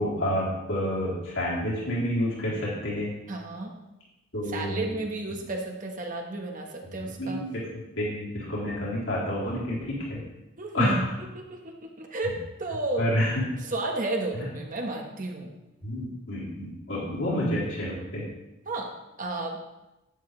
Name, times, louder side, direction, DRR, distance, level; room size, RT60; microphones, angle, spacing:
voice 1, 0.0-3.1 4.3-4.8 7.2-7.6 8.0-10.2 10.7-11.0 13.0-13.3 14.4-14.5 15.8-18.2, equal, 70° left, -6 dB, 3.7 m, -29 dB
voice 2, 3.3-3.8 4.5-7.4 10.6-13.1 13.6-15.5 18.6-18.9 19.2-19.6, right 2 dB, 40° right, 1 dB, 1.3 m, -32 dB
11.0 x 9.2 x 3.3 m, 0.96 s
head